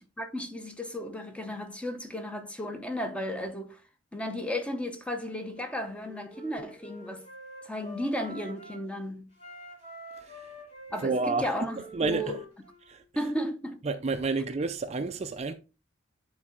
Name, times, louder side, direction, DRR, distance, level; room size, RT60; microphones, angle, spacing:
voice 1, 0.2-3.8 4.1-7.3 7.6-9.3 10.9-12.4 13.2-13.8, equal, 5° left, 0.8 m, -34 dB
Wind instrument woodwind instrument, 5.5-8.9 9.3-13.0, equal, 30° left, 4.2 m, -47 dB
voice 2, 10.2-10.6 11.0-11.5 11.9-12.3 12.9-13.2 13.8-15.5, right 3 dB, 35° right, 0.4 m, -30 dB
9.8 x 3.9 x 3.6 m
head